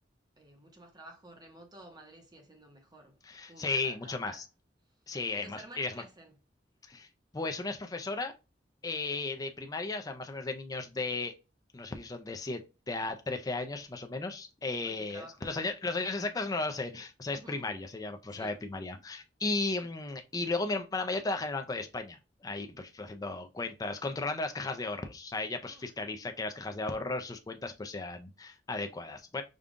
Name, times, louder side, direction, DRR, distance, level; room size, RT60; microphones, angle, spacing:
voice 1, 0.4-3.2 3.5-4.4 5.3-6.3 14.8-15.4 17.3-17.7 18.3-18.6 25.6-25.9, right 1 dB, 25° right, 0.8 m, -52 dB
voice 2, 3.2-4.4 5.1-6.0 6.9-7.1 7.3-8.3 8.8-11.3 11.7-12.6 12.9-29.4, left 3 dB, 20° left, 0.4 m, -35 dB
5.1 x 2.3 x 2.5 m
head